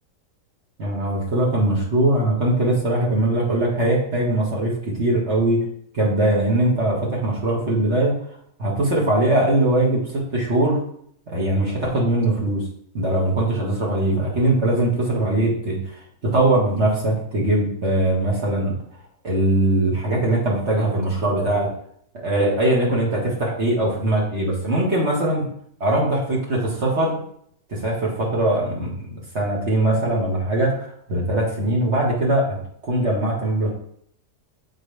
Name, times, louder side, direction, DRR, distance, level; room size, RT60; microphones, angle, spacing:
voice 1, 0.8-5.6 5.9-8.2 8.6-10.8 11.3-12.6 12.9-15.8 16.2-18.7 19.2-21.7 22.1-25.5 25.8-27.2 27.7-32.6 32.8-33.7, right 1 dB, 45° right, -3 dB, 1.9 m, -21 dB
7.4 x 4.4 x 3.3 m, 0.65 s
omnidirectional pair, 1.7 m